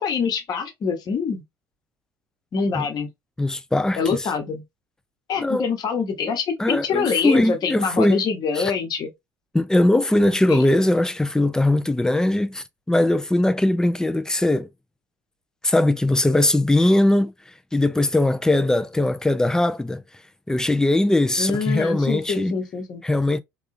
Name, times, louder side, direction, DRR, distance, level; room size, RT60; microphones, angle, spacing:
voice 1, 0.0-1.4 2.5-3.1 3.9-4.6 5.3-9.1 10.5-10.6 21.4-23.0, left 5 dB, 40° left, 1.1 m, -25 dB
voice 2, 3.4-4.3 5.4-5.7 6.6-8.2 8.6-8.7 9.5-14.7 15.6-20.0 20.5-22.5 23.0-23.4, left 1 dB, 5° left, 0.4 m, -20 dB
3.6 x 2.4 x 2.5 m
figure-of-eight pair, 60°, 10 cm